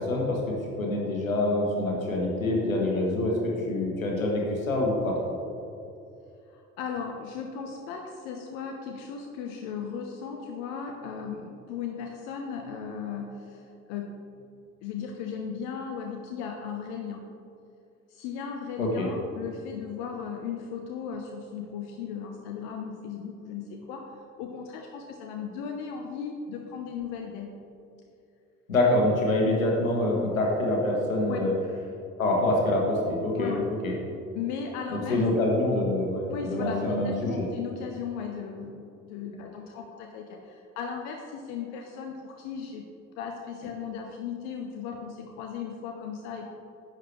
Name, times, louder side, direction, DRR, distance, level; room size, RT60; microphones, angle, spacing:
voice 1, 0.0-5.2 18.8-19.1 28.7-31.5 32.2-33.5 33.8-33.9 34.9-37.3, left 1 dB, 80° left, -1 dB, 1.4 m, -26 dB
voice 2, 6.5-14.2 14.8-17.2 18.1-24.1 24.4-27.5 31.3-31.5 33.4-33.7 34.3-35.2 36.3-42.8 43.2-46.5, left 6 dB, 60° left, 2 dB, 0.8 m, -36 dB
10.5 x 7.7 x 3.1 m, 2.7 s
figure-of-eight pair, 50°, 40 cm